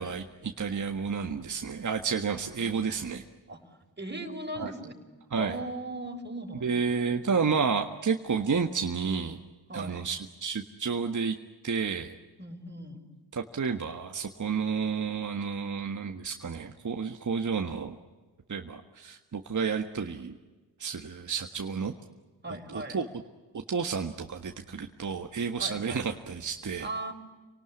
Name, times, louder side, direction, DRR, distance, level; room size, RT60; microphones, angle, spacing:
voice 1, 0.0-3.2 4.6-4.7 5.3-5.6 6.6-9.4 9.7-11.4 11.6-12.1 13.3-18.0 18.5-20.4 20.8-21.9 22.7-23.1 23.7-26.9, right 5 dB, 40° right, 5 dB, 1.6 m, -31 dB
voice 2, 4.0-4.9 5.4-7.2 9.7-10.1 12.4-13.0 22.4-23.0 25.6-26.0 26.8-27.1, right 1 dB, 25° right, 2 dB, 5.6 m, -38 dB
28.0 x 18.5 x 9.8 m, 1.2 s
supercardioid pair, 45°, 46 cm